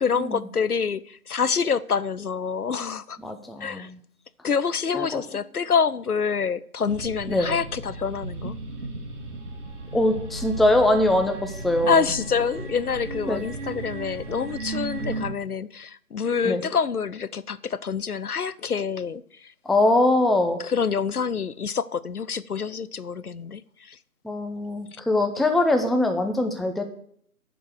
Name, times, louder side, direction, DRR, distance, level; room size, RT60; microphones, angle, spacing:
voice 1, 0.0-3.2 3.6-3.9 4.4-8.5 11.9-19.2 20.6-24.0 24.9-25.0, left 6 dB, 85° left, 17 dB, 0.7 m, -26 dB
voice 2, 3.2-4.0 4.9-5.2 7.3-7.5 9.9-12.1 13.3-13.4 16.4-16.6 19.7-20.6 24.2-26.8, left 1 dB, ahead, 6 dB, 0.4 m, -22 dB
sound 1, 6.9-15.3, right 2 dB, 55° right, 2.1 m, -35 dB
10.5 x 5.4 x 7.9 m, 0.63 s
figure-of-eight pair, 150°, 43 cm